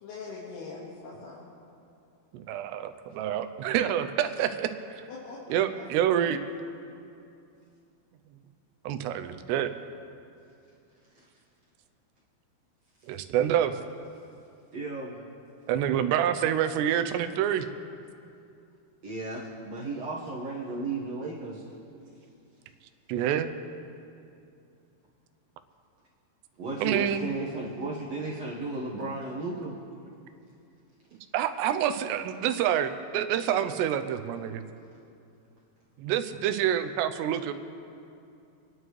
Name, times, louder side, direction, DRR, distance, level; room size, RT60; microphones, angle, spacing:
voice 1, 0.0-1.5 5.1-5.9, left 4 dB, 70° left, -7 dB, 3.6 m, -42 dB
voice 2, 2.3-5.0 5.5-6.4 8.8-9.8 13.1-13.8 15.7-17.7 23.1-23.5 26.8-27.2 31.3-34.6 36.0-37.5, right 10 dB, 80° right, 9 dB, 2.7 m, -27 dB
voice 3, 14.7-15.2 19.0-21.6 26.6-29.8, right 3 dB, 65° right, -5 dB, 1.6 m, -34 dB
28.0 x 11.0 x 3.2 m, 2.6 s
omnidirectional pair, 5.1 m